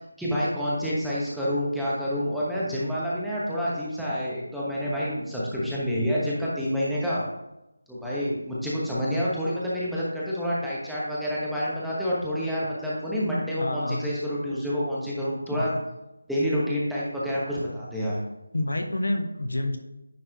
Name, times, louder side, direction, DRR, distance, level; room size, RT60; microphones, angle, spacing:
voice 1, 0.2-7.2 7.9-15.7 16.3-18.2, equal, ahead, -9 dB, 1.1 m, -28 dB
voice 2, 13.6-14.0 15.5-15.7 18.5-19.8, left 1 dB, 75° left, 5 dB, 1.0 m, -28 dB
9.7 x 4.6 x 2.9 m, 0.92 s
figure-of-eight pair, 165°, 0 cm